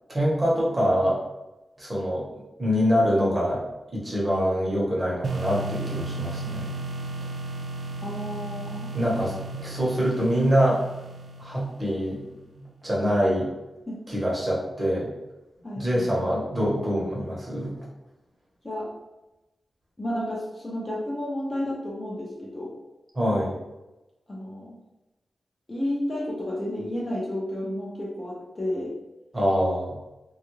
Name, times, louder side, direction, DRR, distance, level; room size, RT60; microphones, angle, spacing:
voice 1, 0.1-1.2 1.8-3.6 3.9-6.7 8.9-10.8 11.4-12.2 12.8-13.5 14.1-15.1 15.8-17.7 23.1-23.5 29.3-30.0, equal, 25° right, -5 dB, 0.9 m, -24 dB
sound 1, 5.2-12.0, right 2 dB, 60° right, 0.3 m, -34 dB
voice 2, 8.0-8.9 13.9-14.0 15.6-16.1 18.6-18.9 20.0-22.7 24.3-24.8 25.7-29.0, left 1 dB, 20° left, -5 dB, 0.5 m, -31 dB
3.3 x 2.3 x 3.1 m, 1.0 s
wide cardioid pair, 165°, 0 cm